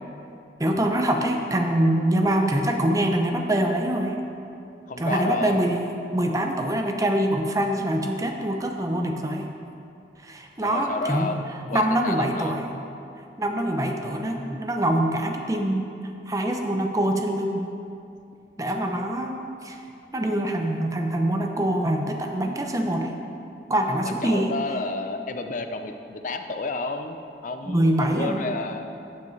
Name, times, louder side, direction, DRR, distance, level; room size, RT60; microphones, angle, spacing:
voice 1, 0.6-4.2 5.0-9.5 10.2-11.3 11.6-12.7 13.4-15.9 16.3-17.7 18.6-19.8 20.1-23.1 23.7-24.5 27.7-28.4, right 1 dB, 20° right, 3 dB, 0.6 m, -24 dB
voice 2, 4.9-5.6 10.6-12.6 24.0-28.9, left 3 dB, 45° left, 7 dB, 0.5 m, -31 dB
11.5 x 7.4 x 3.2 m, 2.6 s
head